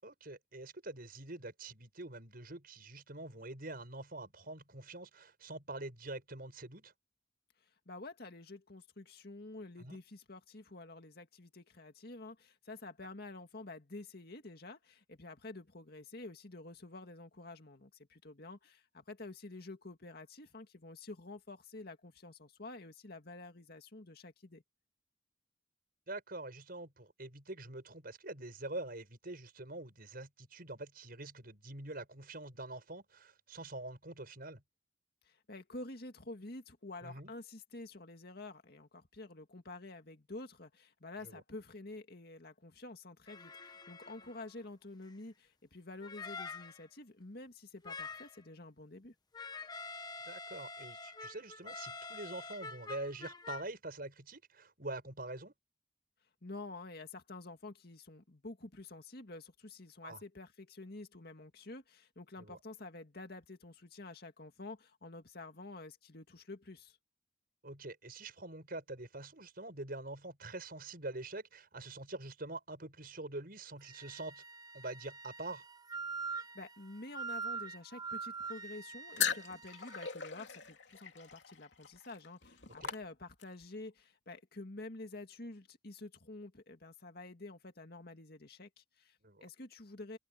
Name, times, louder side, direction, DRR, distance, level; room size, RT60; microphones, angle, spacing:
voice 1, 0.0-6.9 9.8-10.0 26.1-34.6 37.0-37.3 41.2-41.4 50.2-55.5 60.0-60.2 62.4-62.6 67.6-74.4 74.7-75.6 82.8-82.9 89.2-89.5, right 2 dB, 55° right, 6.6 m, -45 dB
voice 2, 7.9-24.6 35.2-49.1 56.4-67.0 76.3-90.2, left 2 dB, 60° left, 2.2 m, -49 dB
sound 1, 43.3-44.6 45.1-45.2 46.0-46.9 47.8-48.4 49.3-53.6, left 4 dB, 25° left, 1.3 m, -46 dB
Wind instrument woodwind instrument, 73.8-80.2, right 5 dB, 25° right, 5.0 m, -44 dB
sound 2, 79.2-83.6, left 8 dB, 80° left, 2.7 m, -39 dB
head